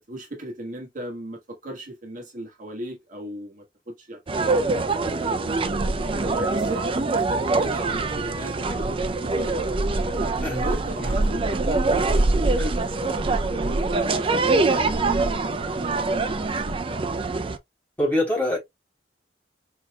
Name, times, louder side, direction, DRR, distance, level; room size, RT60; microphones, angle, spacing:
voice 1, 0.1-5.8 6.1-9.5 10.2-13.1 13.7-15.9 16.3-16.7, right 1 dB, 50° right, 1.5 m, -36 dB
sound 1, 4.3-17.6, right 3 dB, 30° right, 0.5 m, -24 dB
voice 2, 18.0-18.6, left 1 dB, 10° left, 3.5 m, -24 dB
4.7 x 4.5 x 2.3 m
head